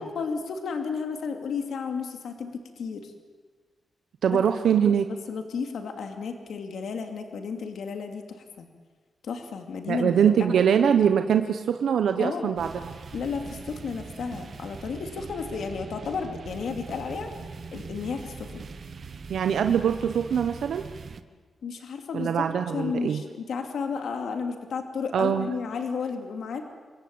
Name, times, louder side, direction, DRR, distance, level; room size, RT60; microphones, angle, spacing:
voice 1, 0.0-2.5 2.8-3.1 4.3-4.4 5.3-8.7 9.2-10.5 12.2-12.5 13.1-17.3 17.7-18.6 21.6-22.4 22.7-26.6, left 5 dB, 70° left, 5 dB, 2.5 m, -32 dB
voice 2, 4.2-5.1 9.9-12.9 19.3-20.8 22.1-23.2 25.1-25.5, right 8 dB, 80° right, 7 dB, 1.1 m, -23 dB
sound 1, 12.6-21.2, right 5 dB, 40° right, 1.3 m, -41 dB
27.5 x 22.5 x 8.8 m, 1.4 s
wide cardioid pair, 170°, 0 cm